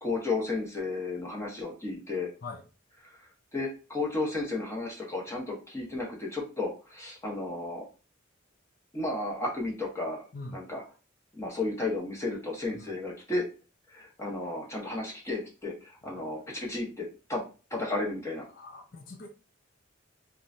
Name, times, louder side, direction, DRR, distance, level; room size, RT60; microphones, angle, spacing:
voice 1, 0.0-2.3 3.5-7.8 8.9-10.2 10.5-10.8 11.4-13.4 13.9-17.4 17.7-18.5, left 2 dB, 15° left, -2 dB, 0.8 m, -33 dB
voice 2, 18.5-19.3, left 3 dB, 45° left, 1 dB, 0.5 m, -43 dB
3.0 x 2.2 x 2.5 m, 0.34 s
head